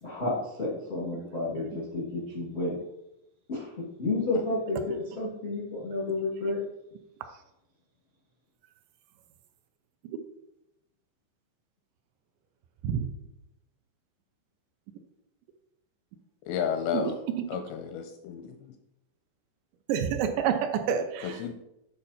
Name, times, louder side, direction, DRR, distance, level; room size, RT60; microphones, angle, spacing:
voice 1, 0.0-2.7 3.5-3.7 4.0-6.6, left 2 dB, 65° left, -5 dB, 0.6 m, -31 dB
voice 2, 16.5-17.2 17.5-18.8 21.2-21.5, left 7 dB, 85° left, 6 dB, 2.5 m, -32 dB
voice 3, 19.9-21.4, right 8 dB, 80° right, 6 dB, 2.7 m, -28 dB
8.8 x 5.7 x 4.2 m, 0.87 s
omnidirectional pair, 5.4 m